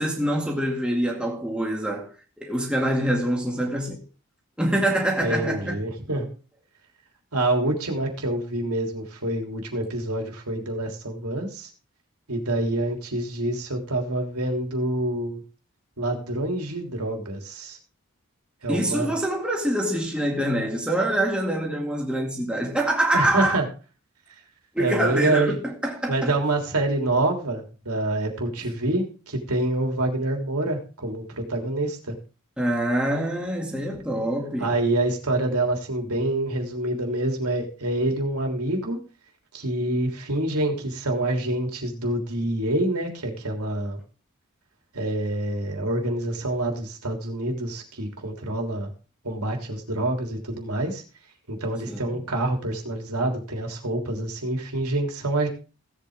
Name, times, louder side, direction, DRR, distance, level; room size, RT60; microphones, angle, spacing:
voice 1, 0.0-2.1 2.4-4.0 4.6-5.8 18.7-23.6 24.7-26.3 32.6-34.7 51.9-52.2, right 1 dB, 5° right, 2.2 m, -25 dB
voice 2, 5.2-6.3 7.3-11.7 12.3-15.4 16.0-17.8 18.6-19.1 23.1-23.7 24.8-25.6 26.1-32.1 34.6-39.0 39.5-44.0 44.9-48.9 49.2-51.0 51.5-55.5, right 1 dB, 90° right, 3.4 m, -26 dB
17.0 x 8.4 x 3.7 m
head